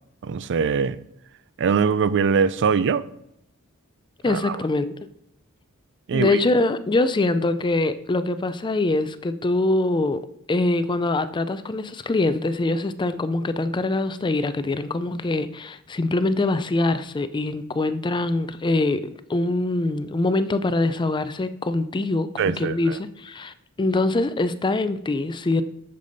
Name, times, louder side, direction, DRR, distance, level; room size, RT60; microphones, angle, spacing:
voice 1, 0.2-1.0 1.6-3.0 4.3-4.6 6.1-6.4 22.4-23.0, right 6 dB, 55° right, 0.4 m, -22 dB
voice 2, 4.2-4.9 6.1-10.2 10.5-22.3 22.6-25.6, left 2 dB, 20° left, 0.4 m, -23 dB
8.5 x 6.8 x 4.0 m
head